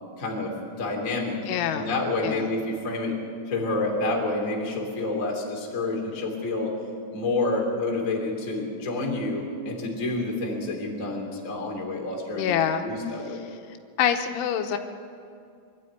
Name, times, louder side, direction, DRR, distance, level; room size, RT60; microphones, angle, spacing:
voice 1, 0.2-1.4 1.7-3.2 3.5-6.7 7.1-13.4, left 2 dB, 20° left, 0 dB, 2.3 m, -28 dB
voice 2, 1.5-1.9 2.2-2.5 12.3-12.8 14.0-14.8, left 9 dB, 85° left, 6 dB, 3.4 m, -25 dB
22.5 x 12.5 x 9.4 m, 2.3 s
omnidirectional pair, 5.5 m